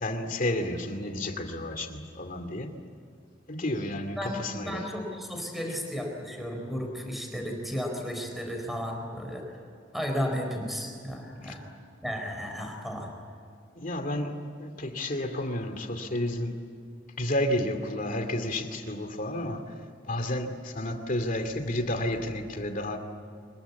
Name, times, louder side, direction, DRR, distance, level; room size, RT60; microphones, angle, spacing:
voice 1, 0.0-2.7 3.5-4.9 11.4-11.5 13.8-16.6 17.2-19.6 20.1-23.0, left 1 dB, 45° left, 6 dB, 2.5 m, -31 dB
voice 2, 4.2-9.4 9.9-11.6 12.0-13.1, equal, ahead, 2 dB, 4.3 m, -34 dB
25.0 x 22.5 x 8.4 m, 2.4 s
head